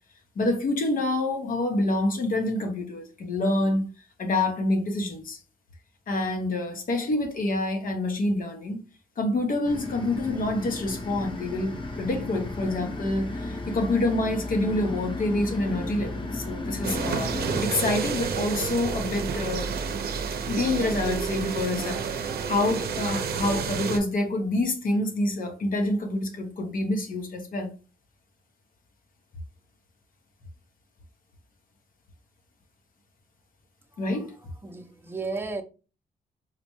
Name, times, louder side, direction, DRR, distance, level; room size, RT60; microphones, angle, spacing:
voice 1, 0.4-3.9 4.2-5.4 6.1-8.8 9.2-17.3 17.6-19.7 20.5-27.7 34.0-34.3, left 2 dB, 60° left, 0.9 m, -27 dB
sound 1, 9.6-17.6, left 2 dB, 30° left, 0.9 m, -34 dB
sound 2, 16.8-24.0, right 6 dB, 75° right, 0.6 m, -30 dB
voice 2, 33.9-34.3 34.6-35.6, right 3 dB, 15° right, 0.7 m, -34 dB
4.2 x 2.1 x 3.0 m
cardioid pair, 65°, 16 cm